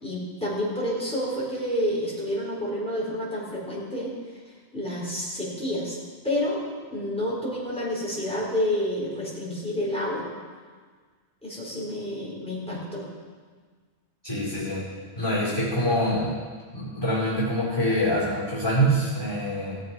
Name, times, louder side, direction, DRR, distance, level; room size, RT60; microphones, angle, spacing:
voice 1, 0.0-4.1 4.7-6.0 6.2-6.6 6.9-10.2 11.4-13.0, left 1 dB, 5° left, -6 dB, 3.8 m, -29 dB
voice 2, 14.2-14.9 15.2-16.3 16.7-19.8, equal, 20° left, -9 dB, 4.4 m, -25 dB
18.0 x 7.5 x 4.7 m, 1.5 s
omnidirectional pair, 1.2 m